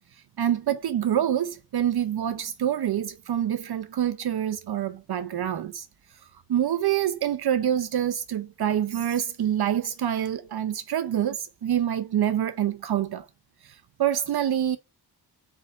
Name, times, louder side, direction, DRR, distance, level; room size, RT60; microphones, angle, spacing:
voice 1, 0.4-5.9 6.5-13.2 13.6-14.8, right 10 dB, 65° right, 0.7 m, -26 dB
8.8 x 3.4 x 5.8 m
wide cardioid pair, 175°, 40 cm